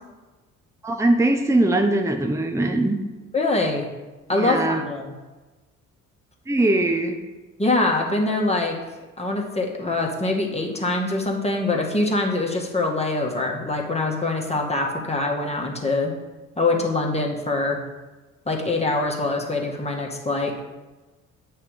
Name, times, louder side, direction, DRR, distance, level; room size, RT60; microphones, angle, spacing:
voice 1, 0.8-3.0 4.3-4.8 6.5-7.2, right 2 dB, 5° right, 4 dB, 0.9 m, -21 dB
voice 2, 3.3-3.9 4.3-5.1 7.6-8.8 9.2-16.1 16.6-17.8 18.5-20.6, left 2 dB, 15° left, 0 dB, 1.7 m, -24 dB
8.5 x 3.4 x 6.5 m, 1.2 s
figure-of-eight pair, 45°, 39 cm